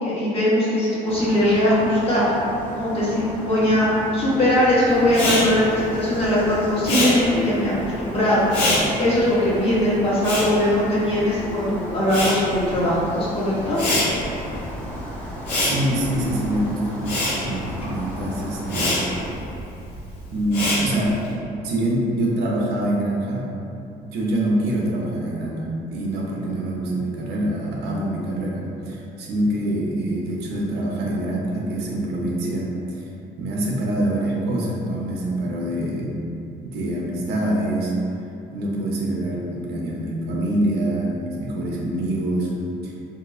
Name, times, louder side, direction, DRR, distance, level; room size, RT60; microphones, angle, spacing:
voice 1, 0.0-2.3 2.8-8.4 9.0-13.8, left 1 dB, 35° left, -9 dB, 1.2 m, -20 dB
sound 1, 1.1-19.3, left 1 dB, 10° left, 0.7 m, -35 dB
Respiratory sounds, 5.1-11.5 11.8-21.3, left 1 dB, 85° left, 1.0 m, -26 dB
voice 2, 15.6-19.0 20.2-21.2 21.6-23.5 24.0-33.1 33.4-36.2 36.6-37.9 38.5-42.5 42.8-42.9, right 1 dB, 75° right, -3 dB, 0.7 m, -25 dB
3.8 x 2.7 x 2.4 m, 2.7 s
cardioid pair, 110°, 17 cm